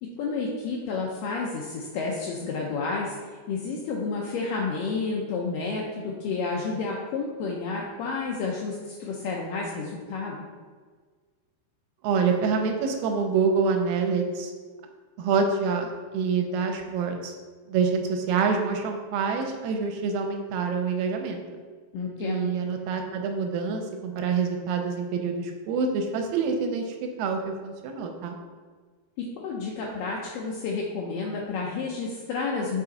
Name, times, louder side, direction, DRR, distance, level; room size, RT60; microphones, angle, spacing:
voice 1, 0.0-3.2 3.5-10.4 21.9-22.5 29.2-32.8, left 4 dB, 80° left, -2 dB, 2.0 m, -30 dB
voice 2, 12.0-14.5 15.2-17.3 17.7-21.6 22.2-28.4, right 5 dB, 85° right, 4 dB, 2.5 m, -26 dB
5.9 x 5.1 x 4.0 m, 1.5 s
omnidirectional pair, 4.5 m